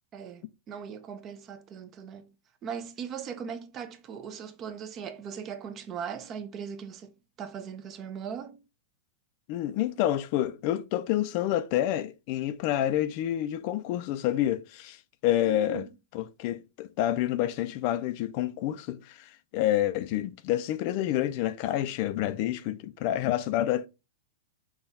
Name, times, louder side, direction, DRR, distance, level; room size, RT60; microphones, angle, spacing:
voice 1, 0.1-2.3 2.6-8.6 15.4-15.9, right 7 dB, 25° right, 0.5 m, -39 dB
voice 2, 9.5-15.8 16.1-23.9, left 13 dB, 40° left, 0.4 m, -28 dB
5.6 x 2.3 x 4.0 m
supercardioid pair, 155°, 0 cm